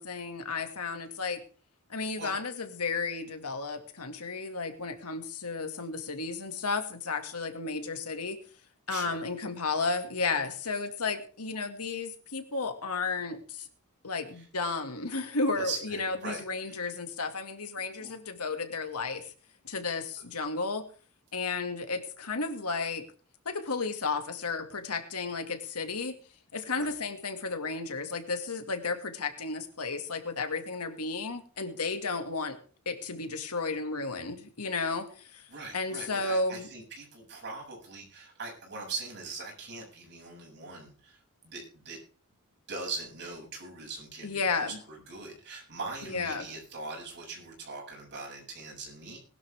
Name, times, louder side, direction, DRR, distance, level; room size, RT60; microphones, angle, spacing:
voice 1, 0.0-1.4 1.9-8.4 8.9-13.7 14.0-19.3 19.6-20.9 21.3-23.0 23.5-26.2 26.5-32.6 32.9-35.5 35.7-36.7 44.2-44.8 46.0-46.5, left 4 dB, 90° left, 6 dB, 2.2 m, -33 dB
voice 2, 8.9-9.2 15.6-16.8 18.0-18.1 26.7-26.9 35.5-41.2 41.4-42.0 42.7-49.2, right 3 dB, 50° right, -2 dB, 7.2 m, -41 dB
20.5 x 11.5 x 3.6 m, 0.40 s
head